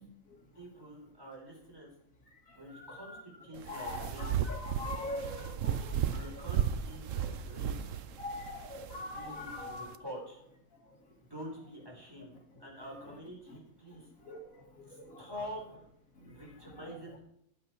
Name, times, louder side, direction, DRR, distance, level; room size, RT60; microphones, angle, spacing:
voice 1, 0.5-1.9 2.5-4.5 5.0-5.2 5.7-5.8 6.1-8.0 9.1-10.4 11.3-12.3 12.6-14.1 14.9-15.9 16.2-17.2, equal, 15° right, -2 dB, 3.9 m, -47 dB
voice 2, 2.7-3.2 3.7-6.5 8.2-9.9 13.5-13.6 14.2-15.3 16.8-16.9, left 2 dB, 70° left, 1 dB, 2.8 m, -43 dB
sound 1, 3.5-10.0, right 8 dB, 70° right, 1.0 m, -35 dB
13.5 x 8.7 x 4.6 m, 0.72 s
omnidirectional pair, 1.4 m